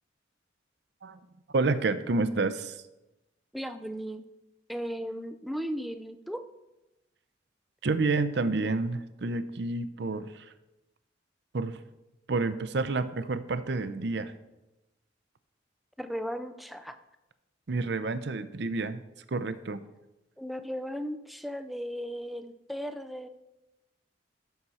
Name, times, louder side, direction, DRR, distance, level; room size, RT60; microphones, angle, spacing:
voice 1, 1.5-2.7 7.8-10.4 11.5-11.8 12.3-14.3 17.7-19.0 19.3-19.8, right 3 dB, 60° right, 12 dB, 0.6 m, -29 dB
voice 2, 3.5-4.2 4.7-6.4 16.0-17.0 20.4-23.3, equal, ahead, 8 dB, 0.4 m, -36 dB
12.5 x 5.9 x 4.2 m, 0.98 s
head